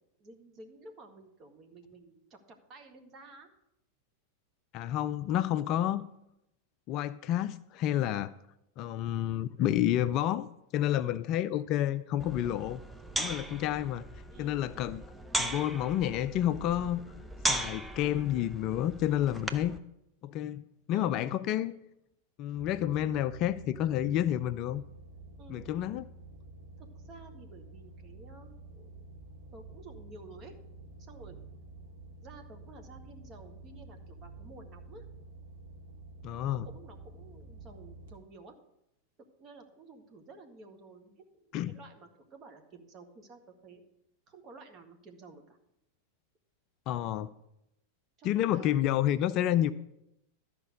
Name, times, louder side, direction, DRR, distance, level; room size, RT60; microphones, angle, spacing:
voice 1, 0.2-3.5 10.9-11.2 13.1-13.4 14.3-14.7 20.9-21.4 25.4-25.9 26.8-28.9 29.5-30.6 31.0-31.4 32.2-35.1 36.4-38.5 39.4-43.8 44.3-45.6 48.2-48.8, right 3 dB, 30° right, 4 dB, 1.7 m, -52 dB
voice 2, 4.7-6.1 6.9-8.3 8.8-10.5 10.7-12.8 13.2-14.1 14.4-15.0 15.4-17.0 17.5-19.7 20.2-21.7 22.4-24.8 25.5-26.0 36.2-36.7 41.5-41.8 46.9-47.3 48.2-49.7, left 12 dB, 40° left, 14 dB, 0.4 m, -29 dB
sound 1, 12.2-19.8, right 1 dB, 5° right, 0.7 m, -37 dB
sound 2, 22.5-38.1, right 2 dB, 55° right, 1.6 m, -50 dB
12.5 x 5.1 x 6.5 m, 0.83 s
figure-of-eight pair, 90°, 0 cm